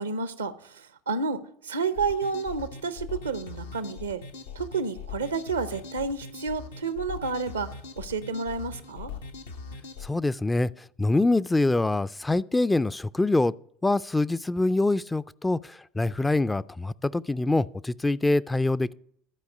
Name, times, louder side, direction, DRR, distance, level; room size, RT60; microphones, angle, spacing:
voice 1, 0.0-4.2 4.5-7.7 8.0-9.1, right 4 dB, 85° right, 0.6 m, -30 dB
sound 1, 1.9-10.1, left 5 dB, 80° left, 0.8 m, -41 dB
voice 2, 10.0-10.7 11.0-13.5 13.8-15.6 16.0-18.9, left 2 dB, 10° left, 0.3 m, -24 dB
12.0 x 4.7 x 6.5 m
hypercardioid pair, 70°, 0 cm